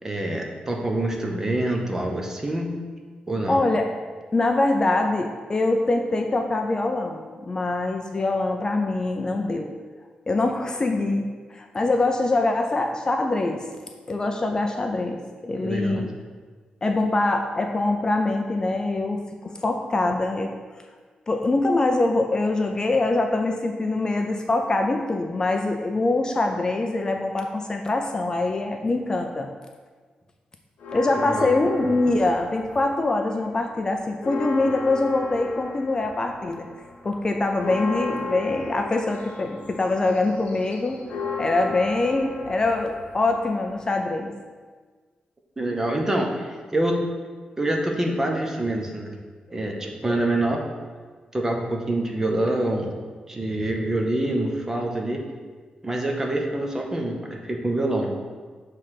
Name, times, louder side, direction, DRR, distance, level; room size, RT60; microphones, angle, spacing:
voice 1, 0.0-2.8 3.3-3.6 15.6-16.0 31.3-31.5 45.6-47.0 47.6-49.1 49.5-50.6 51.3-52.9 53.3-55.2 55.8-58.1, right 1 dB, 20° right, 1 dB, 0.8 m, -26 dB
voice 2, 3.5-3.8 4.3-9.7 10.3-13.7 14.1-16.1 16.8-20.5 21.3-29.5 30.9-36.7 37.0-41.0 41.4-44.3 50.1-50.2, left 2 dB, 25° left, 4 dB, 0.4 m, -24 dB
sound 1, 30.8-33.2 33.5-44.0, left 3 dB, 80° left, 0.8 m, -35 dB
6.6 x 3.2 x 5.8 m, 1.5 s
wide cardioid pair, 135°, 3 cm